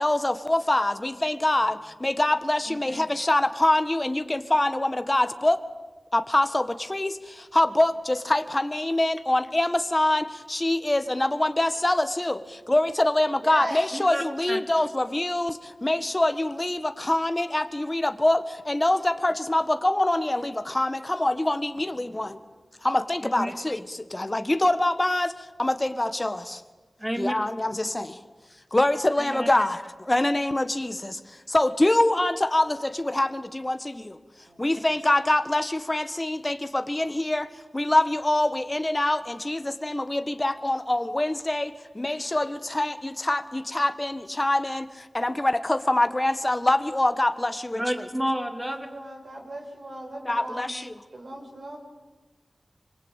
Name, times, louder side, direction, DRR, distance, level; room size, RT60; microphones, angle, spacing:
voice 1, 0.0-5.6 6.1-22.4 22.8-26.6 27.2-28.2 28.7-34.2 34.6-48.1 50.2-51.0, left 1 dB, 25° left, 10 dB, 1.5 m, -25 dB
voice 2, 2.7-3.1 13.9-14.2 14.5-14.6 23.3-23.5 27.0-27.3 29.2-29.6 47.7-48.9, equal, 10° right, 6 dB, 3.1 m, -30 dB
voice 3, 13.4-13.8 22.0-22.1 34.5-34.6 48.6-50.7 51.1-51.8, right 1 dB, 60° right, 1 dB, 6.5 m, -37 dB
25.5 x 24.0 x 9.0 m, 1.3 s
wide cardioid pair, 60°, 0 cm